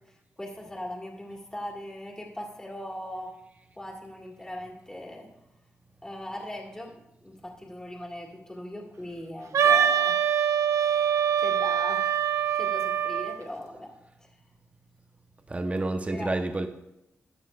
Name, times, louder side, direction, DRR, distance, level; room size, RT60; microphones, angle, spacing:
voice 1, 0.4-3.4 3.8-5.3 6.0-10.5 10.8-12.3 12.5-13.9 14.2-14.3 16.1-16.4, left 1 dB, 15° left, -2 dB, 2.0 m, -39 dB
Wind instrument woodwind instrument, 9.5-13.4, right 8 dB, 75° right, 0.5 m, -24 dB
voice 2, 15.5-16.7, right 2 dB, 25° right, 6 dB, 0.8 m, -29 dB
14.0 x 9.3 x 2.4 m, 0.87 s
cardioid pair, 65°, 5 cm